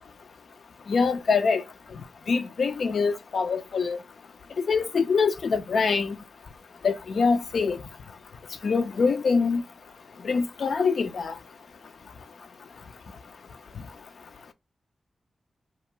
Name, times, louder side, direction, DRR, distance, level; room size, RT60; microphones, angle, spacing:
voice 1, 0.9-1.6 2.3-4.0 4.6-6.2 6.8-7.8 8.6-9.6 10.2-11.4, left 5 dB, 75° left, 0.4 m, -24 dB
2.5 x 2.3 x 2.9 m
cardioid pair, 45°, 0 cm